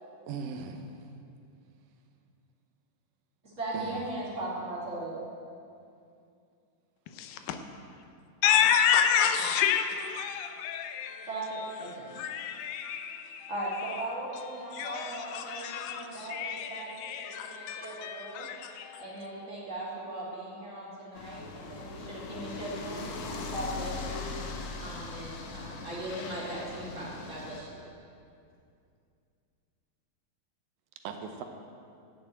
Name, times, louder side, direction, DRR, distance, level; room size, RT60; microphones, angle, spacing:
voice 1, 0.3-1.0 3.7-4.0 31.0-31.4, right 5 dB, 80° right, 5 dB, 2.6 m, -38 dB
voice 2, 3.4-5.2 11.3-12.1 13.5-18.5 19.0-24.3 24.8-27.8, right 1 dB, 25° right, -6 dB, 2.6 m, -38 dB
voice 3, 7.1-7.6 8.4-11.4 12.1-14.0 14.7-19.2, left 8 dB, 85° left, 7 dB, 2.5 m, -30 dB
sound 1, 21.1-27.6, left 3 dB, 65° left, 2.2 m, -40 dB
12.0 x 6.9 x 8.8 m, 2.5 s
omnidirectional pair, 3.9 m